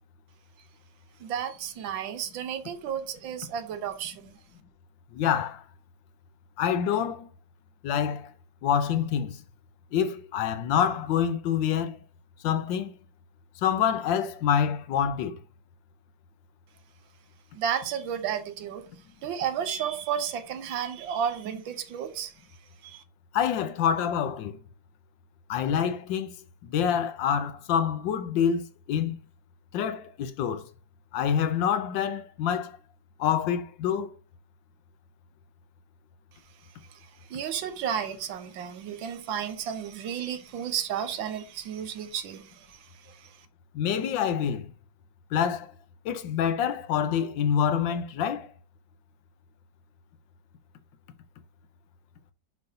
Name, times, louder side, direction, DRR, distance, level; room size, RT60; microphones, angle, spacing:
voice 1, 1.2-4.3 17.5-18.9 19.2-22.3 22.8-23.0 37.3-42.8 43.1-43.3, right 8 dB, 80° right, 1.5 m, -32 dB
voice 2, 5.1-5.6 6.6-7.3 7.8-8.3 8.6-9.4 9.9-12.0 12.4-12.9 13.6-15.4 23.3-24.6 25.5-26.4 26.6-29.2 29.7-30.7 31.1-32.8 33.2-34.1 43.7-44.7 45.3-45.7 46.0-48.5, left 8 dB, 80° left, 1.4 m, -26 dB
6.6 x 5.3 x 2.8 m
omnidirectional pair, 2.1 m